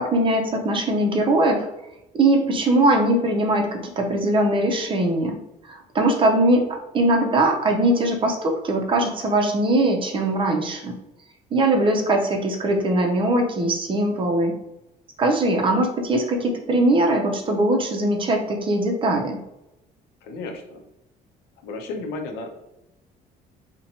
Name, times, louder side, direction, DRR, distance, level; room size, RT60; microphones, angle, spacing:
voice 1, 0.0-1.7 2.1-5.4 5.7-6.6 6.9-10.9 11.5-14.5 15.2-19.4, right 1 dB, 30° right, 3 dB, 0.5 m, -21 dB
voice 2, 20.2-20.8 21.6-22.5, left 3 dB, 90° left, 4 dB, 0.5 m, -33 dB
2.7 x 2.1 x 2.8 m, 0.90 s
cardioid pair, 110°, 17 cm